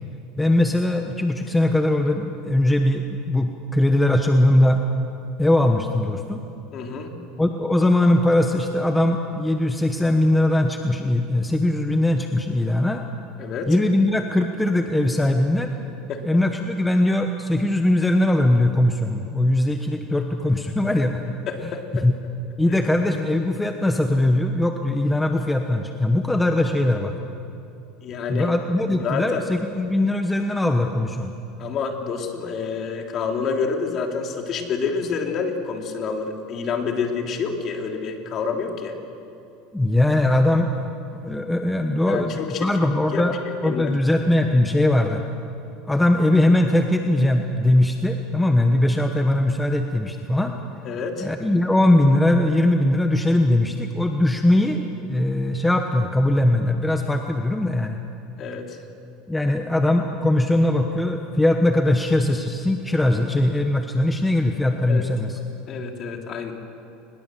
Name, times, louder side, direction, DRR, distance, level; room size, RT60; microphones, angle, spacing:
voice 1, 0.4-4.8 5.4-6.4 7.4-13.0 13.7-15.7 16.2-21.3 22.0-22.1 22.6-27.2 28.3-31.3 39.7-40.7 41.2-45.2 45.9-50.6 51.2-58.0 59.3-65.4, left 1 dB, 5° left, 4 dB, 1.1 m, -20 dB
voice 2, 6.7-7.1 13.4-13.7 16.1-16.2 21.5-22.1 28.0-28.5 29.0-29.4 31.6-38.9 42.1-42.7 43.1-43.2 43.6-43.9 50.8-51.3 58.4-58.8 64.9-65.0 65.7-66.5, left 5 dB, 40° left, 3 dB, 3.1 m, -28 dB
23.0 x 21.0 x 7.7 m, 2.7 s
supercardioid pair, 125°, 0 cm